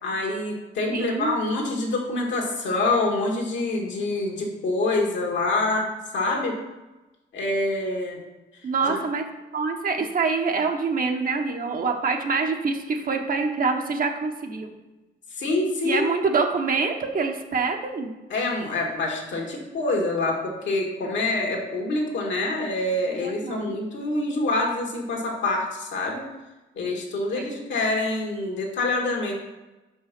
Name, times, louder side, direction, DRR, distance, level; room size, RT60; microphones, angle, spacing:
voice 1, 0.0-5.9 6.1-6.5 7.3-8.2 8.8-9.0 15.4-16.1 18.3-26.2 26.8-29.3, left 2 dB, 70° left, 0 dB, 1.8 m, -26 dB
voice 2, 0.9-1.4 8.6-9.2 9.5-14.7 15.8-18.1 23.2-23.8 27.3-27.7, right 4 dB, 45° right, 3 dB, 1.1 m, -26 dB
5.4 x 4.9 x 5.9 m, 1.1 s
cardioid pair, 90°, 20 cm